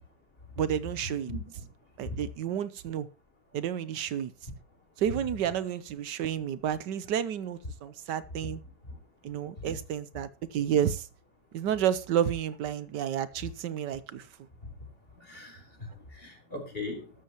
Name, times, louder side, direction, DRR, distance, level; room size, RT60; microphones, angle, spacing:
voice 1, 0.6-1.3 2.0-3.1 3.5-4.3 5.0-8.6 9.2-11.1 11.5-14.2, right 9 dB, 85° right, 1.4 m, -30 dB
voice 2, 15.2-17.1, left 2 dB, 30° left, 3.9 m, -39 dB
13.0 x 12.5 x 3.0 m
omnidirectional pair, 1.9 m